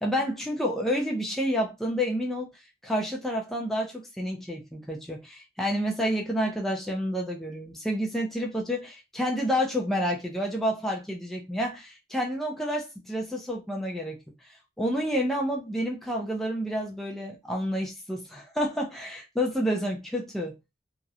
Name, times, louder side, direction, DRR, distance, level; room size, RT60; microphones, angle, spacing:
voice 1, 0.0-2.5 2.8-14.2 14.8-20.5, equal, ahead, 0.3 m, -29 dB
2.7 x 2.0 x 2.3 m
head